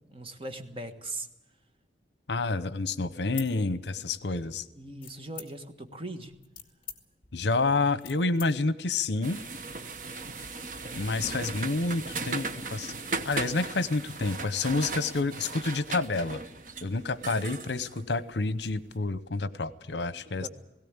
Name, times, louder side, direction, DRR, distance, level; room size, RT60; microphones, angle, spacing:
voice 1, 0.1-1.3 4.7-6.3 20.2-20.5, right 2 dB, 30° right, 6 dB, 1.5 m, -39 dB
voice 2, 2.3-4.6 7.3-9.4 10.9-12.9 13.2-16.4 16.8-20.5, left 3 dB, 70° left, 15 dB, 0.9 m, -29 dB
sound 1, 3.2-4.3 5.0-5.8 6.3-8.5, left 9 dB, 30° left, 1.8 m, -44 dB
sound 2, 9.2-18.8, right 3 dB, 45° right, 1.2 m, -37 dB
18.0 x 17.0 x 8.8 m, 0.96 s
head